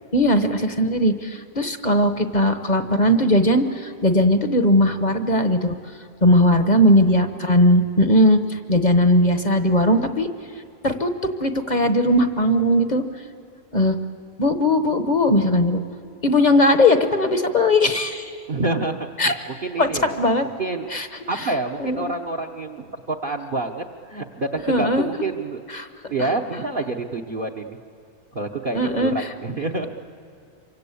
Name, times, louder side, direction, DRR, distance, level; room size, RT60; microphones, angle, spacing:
voice 1, 0.1-5.7 6.2-10.3 10.8-11.1 11.4-13.0 13.7-14.0 14.4-15.8 16.2-18.4 19.2-19.3 19.8-19.9 20.2-20.4 20.9-21.1 21.4-21.5 21.8-22.1 24.7-25.1 25.7-25.9 26.2-26.3 28.7-29.3, left 1 dB, 30° left, 8 dB, 1.0 m, -18 dB
voice 2, 18.5-20.9 21.3-25.6 26.1-27.8 28.3-29.9, right 2 dB, 40° right, 5 dB, 1.0 m, -28 dB
27.0 x 24.5 x 8.5 m, 2.4 s
omnidirectional pair, 1.6 m